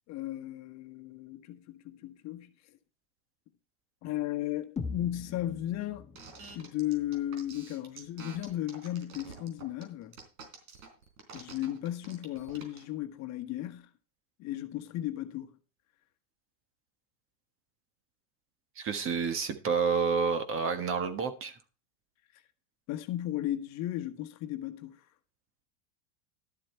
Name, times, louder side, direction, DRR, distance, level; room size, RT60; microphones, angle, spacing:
voice 1, 0.1-2.5 4.0-6.1 6.5-10.2 11.3-13.9 14.4-15.5 22.9-25.0, left 13 dB, 40° left, 1.2 m, -35 dB
sound 1, 4.8-8.7, left 4 dB, 15° left, 1.3 m, -43 dB
sound 2, 6.2-12.8, right 5 dB, 85° right, 3.8 m, -48 dB
voice 2, 18.8-21.5, right 5 dB, 30° right, 1.5 m, -29 dB
12.0 x 7.6 x 4.4 m
supercardioid pair, 135°, 40 cm